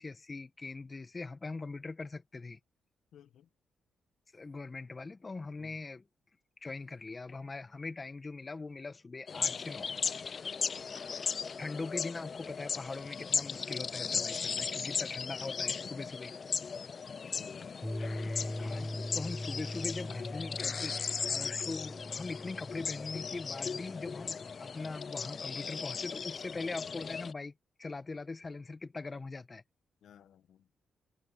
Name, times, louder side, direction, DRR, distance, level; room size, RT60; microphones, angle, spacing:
voice 1, 0.0-2.6 4.3-6.0 6.6-9.9 11.6-16.3 18.6-27.5 27.8-29.6, left 3 dB, 30° left, 1.2 m, -41 dB
voice 2, 3.1-3.5 5.6-5.8 10.4-10.9 16.9-17.7 30.0-30.7, left 10 dB, 75° left, 1.1 m, -58 dB
sound 1, 9.3-27.3, left 5 dB, 45° left, 0.3 m, -37 dB
sound 2, 17.8-24.9, left 1 dB, 10° left, 0.9 m, -42 dB
cardioid pair, 75°, 0 cm